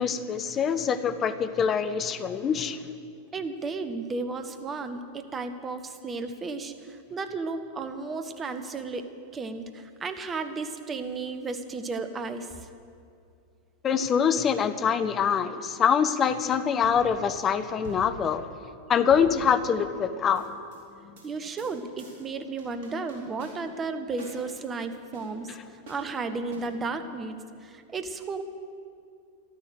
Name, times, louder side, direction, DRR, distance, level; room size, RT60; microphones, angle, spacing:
voice 1, 0.0-2.8 13.8-18.4 18.9-20.5 25.5-25.6, left 7 dB, 25° left, 12 dB, 0.8 m, -24 dB
voice 2, 3.3-6.7 7.1-9.1 9.3-12.5 21.2-25.5 25.9-27.3 27.6-28.4, right 4 dB, 20° right, 8 dB, 1.1 m, -33 dB
sound 1, 16.8-17.3 17.8-19.9 20.4-20.8 21.2-21.3 21.6-21.7 22.0-22.2 22.6-23.8 24.2-24.4 25.1-25.2 25.9-26.1 26.5-26.6, right 2 dB, 50° right, 4.3 m, -46 dB
14.0 x 12.5 x 6.4 m, 2.4 s
figure-of-eight pair, 90°, 0 cm